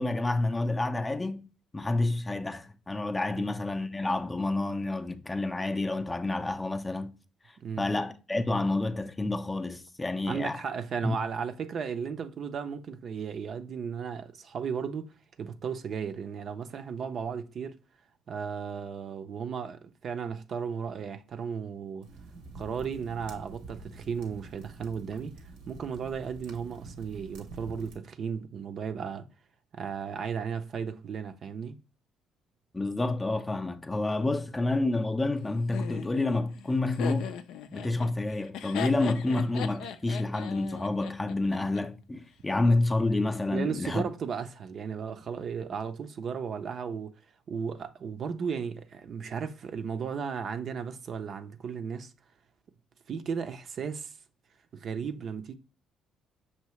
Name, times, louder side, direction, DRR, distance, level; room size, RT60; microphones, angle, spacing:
voice 1, 0.0-1.4 1.7-7.1 7.8-10.6 11.0-11.2 32.7-37.4 37.7-44.0, left 2 dB, 20° left, 0.4 m, -29 dB
voice 2, 10.2-17.8 18.3-22.1 22.5-25.4 25.7-29.3 29.7-31.8 43.5-47.1 47.5-52.1 53.1-54.2 54.7-55.5, right 6 dB, 55° right, 0.5 m, -35 dB
sound 1, 22.0-27.9, right 3 dB, 85° right, 0.9 m, -47 dB
Laughter, 35.7-41.8, left 9 dB, 80° left, 0.4 m, -39 dB
5.7 x 2.7 x 3.0 m
cardioid pair, 85°, 0 cm